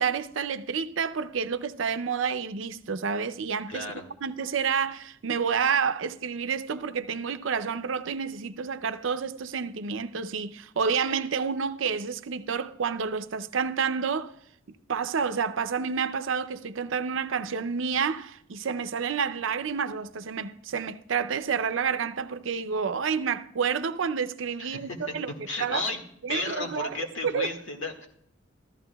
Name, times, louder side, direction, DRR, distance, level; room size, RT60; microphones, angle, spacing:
voice 1, 0.0-3.9 4.2-14.3 14.9-25.3 25.6-25.8 26.2-27.5, right 6 dB, 80° right, 0.6 m, -29 dB
voice 2, 3.7-4.1 24.6-25.1 25.5-26.0 26.3-28.1, left 2 dB, 80° left, 1.9 m, -33 dB
14.5 x 13.5 x 2.3 m
head